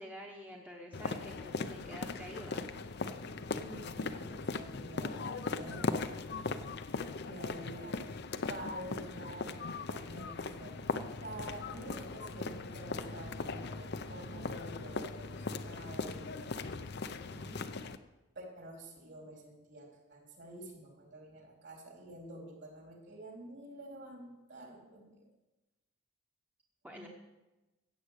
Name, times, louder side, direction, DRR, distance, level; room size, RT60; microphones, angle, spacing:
voice 1, 0.0-2.7 17.1-17.6 26.8-27.1, equal, 5° right, -1 dB, 1.1 m, -48 dB
sound 1, 0.9-18.0, left 3 dB, 50° left, 0.6 m, -39 dB
voice 2, 3.6-6.3 7.2-8.2 8.5-10.8 11.2-16.7 18.4-25.2 26.9-27.1, right 1 dB, 55° right, -1 dB, 3.8 m, -49 dB
15.0 x 8.6 x 6.7 m, 1.1 s
head